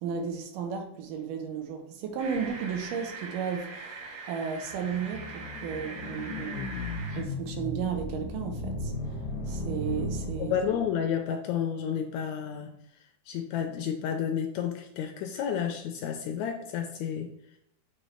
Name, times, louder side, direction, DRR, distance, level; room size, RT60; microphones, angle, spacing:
voice 1, 0.0-6.8 7.2-8.9 9.5-10.6, right 7 dB, 90° right, 4 dB, 2.5 m, -34 dB
sound 1, 2.2-7.2, right 4 dB, 55° right, 2.1 m, -42 dB
sound 2, 4.7-11.0, left 2 dB, 55° left, 1.0 m, -36 dB
voice 2, 10.4-12.7 13.3-17.3, left 8 dB, 80° left, 5 dB, 1.7 m, -31 dB
7.3 x 3.3 x 4.3 m, 0.77 s
omnidirectional pair, 3.7 m